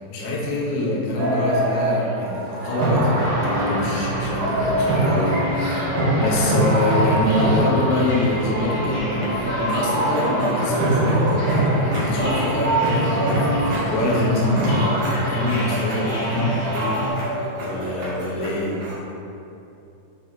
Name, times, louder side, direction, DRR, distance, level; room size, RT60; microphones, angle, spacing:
voice 1, 0.1-5.8 6.1-17.2 17.6-18.7, left 1 dB, 80° left, -5 dB, 1.6 m, -25 dB
sound 1, 1.2-18.9, right 1 dB, 60° right, 1.6 m, -24 dB
sound 2, 3.0-14.8, right 1 dB, 80° right, 2.9 m, -30 dB
sound 3, 3.2-17.1, equal, 55° left, 2.3 m, -31 dB
6.3 x 4.0 x 4.6 m, 2.8 s
omnidirectional pair, 4.7 m